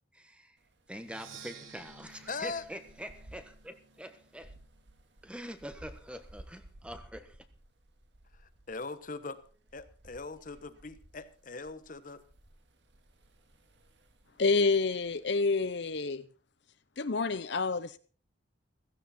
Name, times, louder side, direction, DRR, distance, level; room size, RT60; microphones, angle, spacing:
voice 1, 0.1-0.6 0.9-4.5 5.2-7.4, equal, 5° right, 1.3 m, -45 dB
sound 1, 0.6-16.0, right 1 dB, 60° right, 2.0 m, -58 dB
Percussion, 1.0-4.8, right 6 dB, 85° right, 1.9 m, -53 dB
voice 2, 2.3-2.6 8.3-9.4 9.7-12.2, left 4 dB, 40° left, 1.1 m, -41 dB
voice 3, 14.4-16.2 17.0-18.0, left 4 dB, 60° left, 0.7 m, -28 dB
16.0 x 15.5 x 4.3 m
head